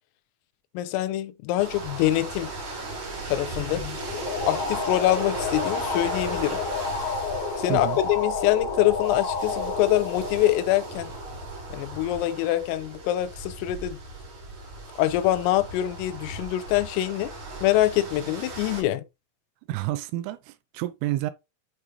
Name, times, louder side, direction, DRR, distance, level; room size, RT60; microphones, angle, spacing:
voice 1, 0.8-2.5 3.3-4.0 4.4-6.6 7.6-11.1 11.7-14.0 15.0-17.3 17.6-19.0, left 14 dB, 85° left, 3.5 m, -24 dB
sound 1, 1.6-18.8, right 2 dB, 40° right, 4.0 m, -37 dB
sound 2, 4.0-11.4, left 4 dB, 60° left, 1.6 m, -30 dB
voice 2, 19.7-21.3, right 16 dB, 80° right, 3.1 m, -29 dB
8.4 x 5.4 x 3.2 m
omnidirectional pair, 5.9 m